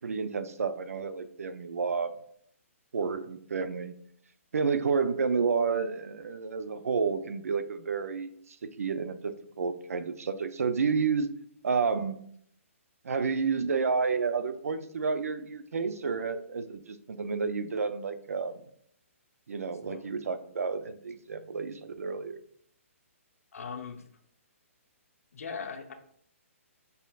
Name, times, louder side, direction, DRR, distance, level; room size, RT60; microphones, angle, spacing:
voice 1, 0.0-2.1 2.9-3.9 4.5-11.3 11.6-12.2 13.0-18.6 19.5-22.4, right 5 dB, 85° right, 11 dB, 0.5 m, -30 dB
voice 2, 23.5-24.0 25.3-25.9, left 5 dB, 80° left, 4 dB, 0.8 m, -39 dB
5.2 x 4.2 x 2.3 m, 0.65 s
hypercardioid pair, 155°, 8 cm